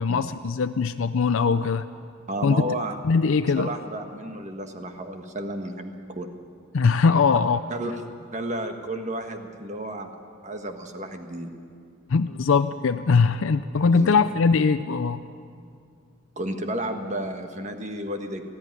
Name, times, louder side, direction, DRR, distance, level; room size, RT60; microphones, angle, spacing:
voice 1, 0.0-1.9 2.4-2.6 3.0-3.7 6.7-7.6 12.1-15.2, left 5 dB, 70° left, 10 dB, 0.5 m, -21 dB
voice 2, 2.3-3.0 3.5-6.3 7.7-7.9 8.3-10.1 10.4-11.5 13.9-14.1 16.4-18.4, right 1 dB, 35° right, 5 dB, 1.4 m, -32 dB
19.0 x 14.5 x 9.6 m, 2.3 s
head